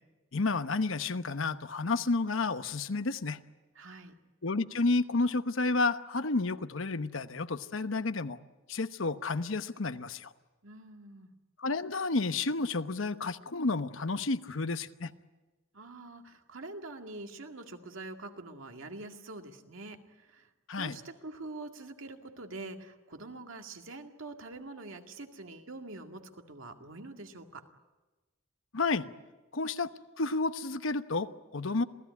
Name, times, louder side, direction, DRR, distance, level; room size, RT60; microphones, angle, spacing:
voice 1, 0.3-3.4 4.4-8.4 8.7-10.3 11.6-15.1 20.7-21.0 28.7-29.1 29.5-29.9 30.2-31.8, left 3 dB, 75° left, 11 dB, 1.0 m, -31 dB
voice 2, 3.8-4.2 10.6-11.3 15.7-27.6, right 2 dB, 80° right, 4 dB, 2.1 m, -45 dB
27.5 x 17.0 x 9.5 m, 1.2 s
head